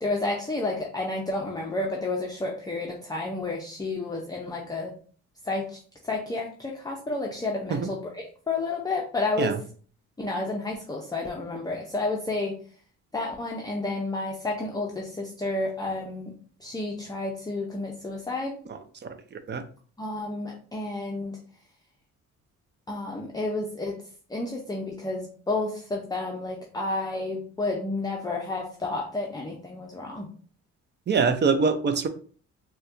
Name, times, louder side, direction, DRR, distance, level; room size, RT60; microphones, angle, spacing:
voice 1, 0.0-4.9 5.4-5.8 6.0-9.5 10.2-12.6 13.1-16.3 16.6-18.6 20.0-21.4 22.9-24.0 24.3-30.3, left 2 dB, 15° left, 0 dB, 0.5 m, -31 dB
voice 2, 18.7-19.6 31.1-32.1, right 5 dB, 35° right, 9 dB, 0.5 m, -25 dB
4.0 x 2.2 x 2.5 m, 0.43 s
cardioid pair, 90°, 30 cm